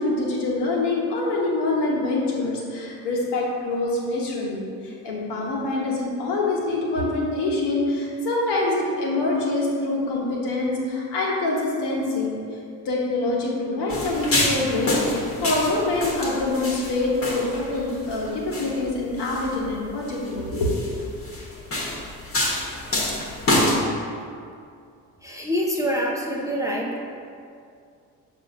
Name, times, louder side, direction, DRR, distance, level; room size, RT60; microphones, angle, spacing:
voice 1, 0.0-12.4 12.8-20.7, left 2 dB, 55° left, -3 dB, 1.4 m, -25 dB
sound 1, 13.9-23.8, left 1 dB, 30° left, 1.3 m, -27 dB
voice 2, 25.2-27.0, equal, 5° right, -3 dB, 0.6 m, -26 dB
6.8 x 2.7 x 5.3 m, 2.4 s
figure-of-eight pair, 45°, 46 cm